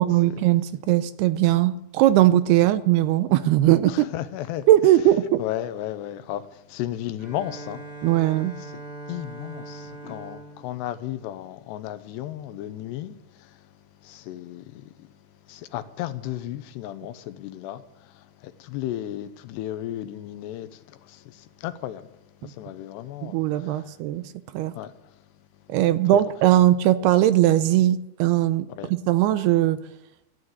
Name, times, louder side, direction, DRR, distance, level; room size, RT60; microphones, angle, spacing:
voice 1, 0.0-4.1 4.7-5.4 8.0-8.6 22.4-22.5 23.2-24.2 24.5-24.7 25.7-29.8, right 13 dB, 80° right, 2.6 m, -20 dB
voice 2, 3.9-4.7 5.4-7.9 9.1-13.7 14.0-15.1 15.5-22.1 22.4-23.9 24.7-24.9 28.8-28.9, left 12 dB, 80° left, 2.9 m, -34 dB
Bowed string instrument, 7.2-12.0, right 2 dB, 10° right, 2.4 m, -42 dB
15.0 x 11.5 x 8.0 m
omnidirectional pair, 4.9 m